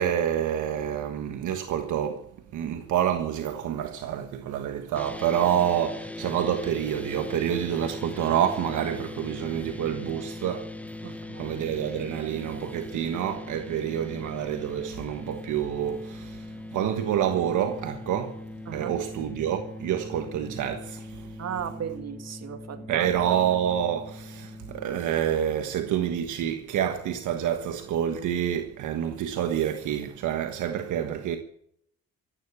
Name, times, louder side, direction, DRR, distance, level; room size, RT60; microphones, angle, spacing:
voice 1, 0.0-2.3 2.5-10.7 11.0-18.4 18.7-21.4 22.9-31.4, right 10 dB, 80° right, 1.4 m, -28 dB
sound 1, 4.9-24.9, left 2 dB, 5° left, 0.8 m, -40 dB
voice 2, 11.0-11.6 18.7-18.9 21.4-23.1, right 8 dB, 55° right, 2.1 m, -36 dB
14.5 x 10.5 x 8.3 m
cardioid pair, 90°, 30 cm